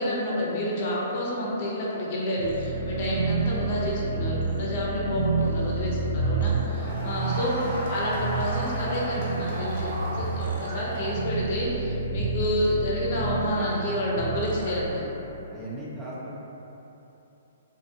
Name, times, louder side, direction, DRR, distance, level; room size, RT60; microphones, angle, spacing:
voice 1, 0.0-7.6 7.9-15.1, left 1 dB, 50° left, -5 dB, 0.6 m, -29 dB
sound 1, 2.4-14.9, right 3 dB, 75° right, 0.4 m, -29 dB
Crowd, 6.7-11.5, equal, 50° right, 0.8 m, -36 dB
voice 2, 15.5-16.3, right 1 dB, 15° right, -8 dB, 0.5 m, -37 dB
2.7 x 2.6 x 2.5 m, 3.0 s
hypercardioid pair, 130°, 0 cm